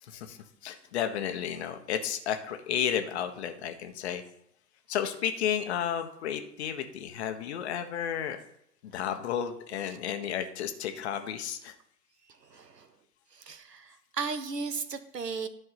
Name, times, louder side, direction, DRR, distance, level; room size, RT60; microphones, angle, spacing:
voice 1, 0.0-4.2 4.9-8.4 8.8-11.7, left 9 dB, 45° left, 7 dB, 1.1 m, -32 dB
voice 2, 12.4-12.9 13.3-15.5, right 5 dB, 80° right, 11 dB, 1.1 m, -36 dB
11.5 x 4.6 x 5.7 m, 0.75 s
figure-of-eight pair, 110°, 48 cm